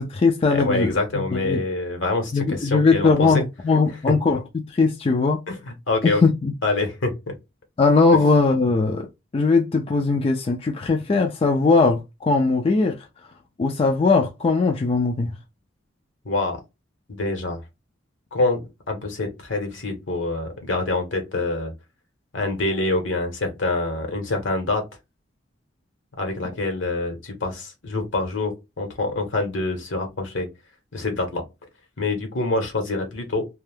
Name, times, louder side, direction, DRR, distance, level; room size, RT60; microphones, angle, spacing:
voice 1, 0.0-1.6 2.3-5.4 6.0-6.5 7.8-9.1 9.3-13.1 13.6-15.3, left 4 dB, 30° left, 0.3 m, -20 dB
voice 2, 0.5-3.4 5.5-6.2 6.6-7.3 16.2-16.6 17.1-17.6 18.3-18.6 18.9-21.7 22.3-24.8 26.2-30.5 30.9-31.4 32.0-33.5, left 2 dB, 75° left, 1.0 m, -26 dB
2.6 x 2.2 x 3.3 m
head